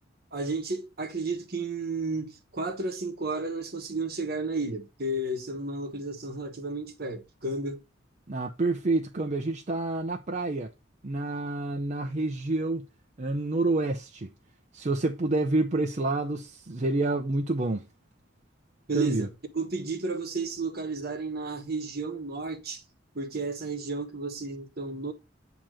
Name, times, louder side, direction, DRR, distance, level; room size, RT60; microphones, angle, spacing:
voice 1, 0.3-7.8 18.9-19.3 19.5-22.8 23.1-25.1, right 3 dB, 55° right, 1.1 m, -32 dB
voice 2, 8.3-10.7 11.0-12.9 13.2-14.3 14.7-17.9 18.9-19.3, right 2 dB, 40° right, 0.6 m, -28 dB
8.9 x 3.0 x 6.2 m
head